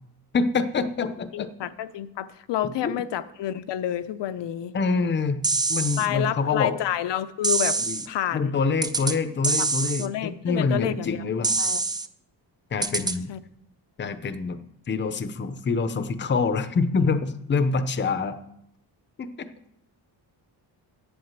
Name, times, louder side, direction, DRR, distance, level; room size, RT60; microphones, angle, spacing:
voice 1, 0.3-1.5 2.6-2.9 4.7-5.4 5.7-6.8 7.9-8.0 8.3-11.5 12.7-13.3 14.0-14.6 14.9-18.4 19.2-19.3, left 4 dB, 25° left, 11 dB, 0.6 m, -26 dB
voice 2, 1.3-4.7 6.0-7.8 8.1-8.5 9.6-9.7 10.0-11.2 11.6-11.9 12.9-13.4, left 11 dB, 80° left, 11 dB, 0.7 m, -29 dB
sound 1, 5.4-6.1 7.4-8.1 8.8-9.2 9.4-10.1 11.4-12.1 12.8-13.2, right 3 dB, 10° right, 0.3 m, -25 dB
8.7 x 8.0 x 7.4 m, 0.79 s
wide cardioid pair, 155°, 42 cm